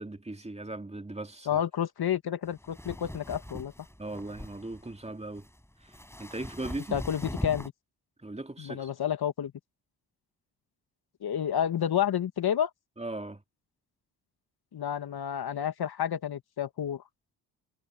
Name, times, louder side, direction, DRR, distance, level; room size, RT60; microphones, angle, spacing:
voice 1, 0.0-1.6 4.0-5.5 5.8-7.0 8.2-8.9 13.0-13.4, right 2 dB, 15° right, 2.3 m, -39 dB
voice 2, 1.5-3.7 6.9-7.7 8.6-9.5 11.2-12.7 14.7-17.0, left 9 dB, 55° left, 2.1 m, -30 dB
sound 1, 2.4-7.7, left 1 dB, 5° left, 6.5 m, -40 dB
hypercardioid pair, 45°, 44 cm